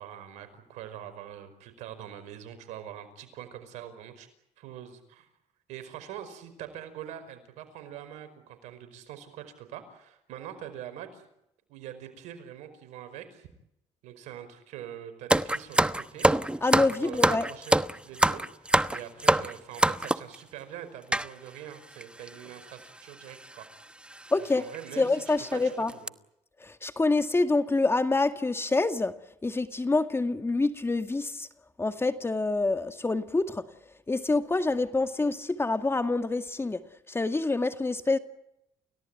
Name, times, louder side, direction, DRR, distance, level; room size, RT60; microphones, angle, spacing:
voice 1, 0.0-4.3 4.6-5.3 5.7-11.2 11.7-13.5 14.0-16.3 16.9-17.8 18.0-23.7 24.4-25.1 25.5-26.1, right 10 dB, 80° right, 10 dB, 5.1 m, -44 dB
sound 1, 15.3-20.4 21.1-21.3 22.0-22.1 22.3-22.5 23.4-23.6 24.1-24.2 24.7-24.8 25.3-25.5 25.9-26.1, right 1 dB, 10° right, 1.0 m, -24 dB
voice 2, 16.6-17.5 24.3-24.7 25.0-25.9 26.6-29.1 29.4-31.5 31.8-33.6 34.1-36.8 37.1-38.2, left 3 dB, 20° left, 8 dB, 2.1 m, -26 dB
29.5 x 17.5 x 9.1 m, 0.83 s
supercardioid pair, 75°, 12 cm